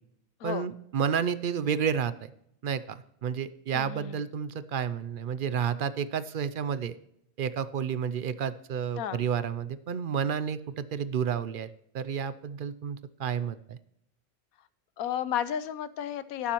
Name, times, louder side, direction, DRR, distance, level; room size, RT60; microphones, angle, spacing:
voice 1, 0.4-2.3 2.6-6.9 7.4-11.7 11.9-13.8, right 7 dB, 65° right, 14 dB, 0.5 m, -31 dB
voice 2, 3.7-4.2 9.0-9.2 15.0-16.5, left 10 dB, 85° left, 14 dB, 1.2 m, -32 dB
18.0 x 7.2 x 3.0 m, 0.75 s
omnidirectional pair, 1.5 m